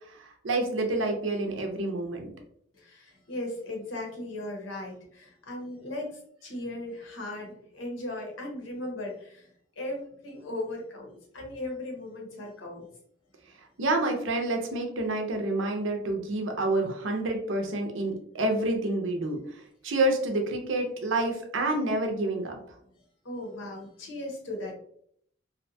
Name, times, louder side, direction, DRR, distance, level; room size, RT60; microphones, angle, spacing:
voice 1, 0.1-2.3 13.8-19.4 19.8-22.6, right 2 dB, 75° right, 3 dB, 0.6 m, -28 dB
voice 2, 2.7-9.5 9.8-12.9 23.2-24.7, left 1 dB, 80° left, 0 dB, 0.9 m, -37 dB
2.6 x 2.2 x 2.6 m, 0.66 s
head